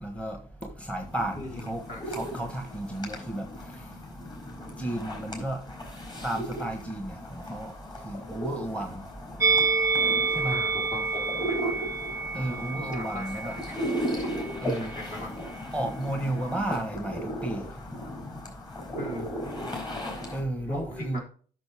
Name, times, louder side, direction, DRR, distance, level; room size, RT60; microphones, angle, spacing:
voice 1, 0.0-0.4 0.8-1.8 2.1-3.4 4.8-5.6 6.2-7.7 8.0-8.9 10.4-10.6 12.3-13.5 14.6-14.9 15.7-17.6 20.3-21.2, right 1 dB, 5° left, 5 dB, 1.3 m, -32 dB
sound 1, 1.0-20.4, equal, 25° left, 4.0 m, -36 dB
voice 2, 1.4-2.1 10.5-11.7 12.9-14.6 15.0-15.3 18.9-19.5 20.7-21.2, left 1 dB, 50° left, 0 dB, 3.7 m, -40 dB
Musical instrument, 9.4-14.6 14.9-15.1, right 4 dB, 15° right, 0.6 m, -28 dB
9.7 x 6.5 x 3.5 m, 0.42 s
cardioid pair, 110°, 17 cm